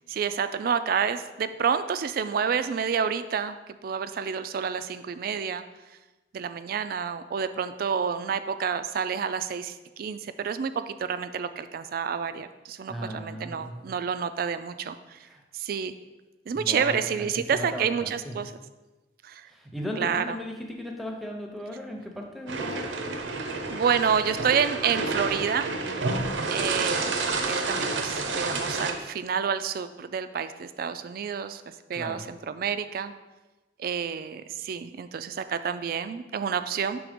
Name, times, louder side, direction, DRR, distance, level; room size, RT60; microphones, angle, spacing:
voice 1, 0.1-3.6 3.8-5.6 6.3-15.2 15.5-15.9 16.5-18.5 19.2-19.5 20.0-20.4 23.7-25.7 26.5-27.2 27.5-31.6 31.9-33.1 33.8-37.0, right 7 dB, 50° right, 11 dB, 0.3 m, -29 dB
voice 2, 12.9-13.8 15.2-15.4 16.5-18.4 19.5-23.0 26.3-26.6 31.9-32.3, equal, ahead, 1 dB, 0.7 m, -37 dB
sound 1, 22.5-28.9, right 3 dB, 85° right, 0.7 m, -29 dB
6.3 x 3.3 x 5.1 m, 1.1 s
head